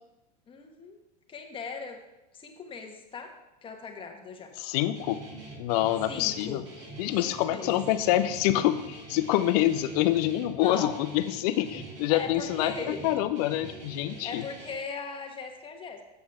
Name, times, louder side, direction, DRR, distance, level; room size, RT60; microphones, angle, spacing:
voice 1, 0.5-1.0 1.3-2.0 2.3-3.3 3.6-4.5 6.1-6.7 7.1-7.8 10.6-11.0 12.1-13.0 14.2-16.0, left 5 dB, 25° left, 3 dB, 1.3 m, -38 dB
voice 2, 4.6-5.2 5.6-6.6 7.0-12.7 13.0-14.4, left 14 dB, 65° left, 11 dB, 0.7 m, -26 dB
Guitar, 5.0-14.7, right 2 dB, 30° right, 2.7 m, -44 dB
7.8 x 7.1 x 3.6 m, 0.97 s
hypercardioid pair, 105°, 21 cm